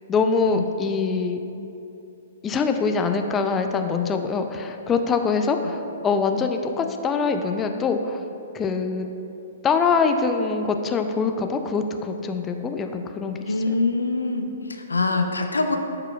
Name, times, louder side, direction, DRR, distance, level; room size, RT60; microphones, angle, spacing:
voice 1, 0.1-1.4 2.4-8.2 8.5-9.1 9.6-13.7, left 5 dB, 20° left, 6 dB, 0.4 m, -24 dB
voice 2, 13.5-15.8, left 3 dB, 85° left, 5 dB, 0.5 m, -24 dB
11.5 x 4.8 x 2.3 m, 2.8 s
figure-of-eight pair, 120°, 0 cm